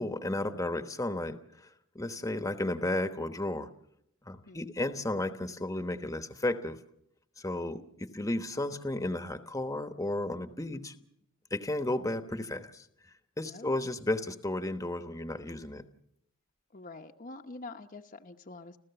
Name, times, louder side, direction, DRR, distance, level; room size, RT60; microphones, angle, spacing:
voice 1, 0.0-1.4 1.9-3.7 4.2-6.8 7.4-10.9 11.5-12.8 13.4-15.8, left 1 dB, 15° left, 8 dB, 1.1 m, -33 dB
voice 2, 13.5-13.8 16.7-18.8, left 3 dB, 40° left, 4 dB, 0.9 m, -46 dB
30.0 x 14.0 x 7.0 m, 0.76 s
head